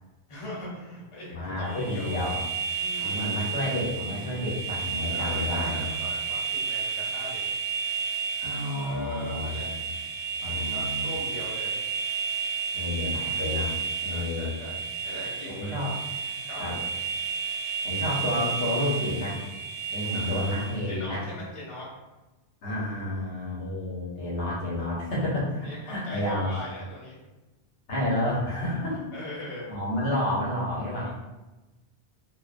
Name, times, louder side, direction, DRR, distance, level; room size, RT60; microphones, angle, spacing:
voice 1, 0.3-2.1 2.7-3.2 5.1-7.4 8.8-9.7 10.4-11.8 14.1-14.8 15.0-15.8 16.5-16.9 18.0-18.1 20.1-21.9 25.6-27.2 29.1-29.7 31.0-31.1, left 1 dB, 35° left, -7 dB, 0.8 m, -40 dB
voice 2, 1.3-2.4 3.0-5.9 8.4-9.6 10.4-11.0 12.7-13.7 14.0-14.5 15.5-15.9 16.6-16.7 17.8-19.4 19.9-21.2 22.6-26.5 27.9-29.1 29.7-31.1, left 1 dB, 75° left, -6 dB, 1.0 m, -30 dB
sound 1, 1.7-20.9, right 6 dB, 55° right, 0.6 m, -32 dB
2.4 x 2.1 x 2.4 m, 1.1 s
omnidirectional pair, 1.1 m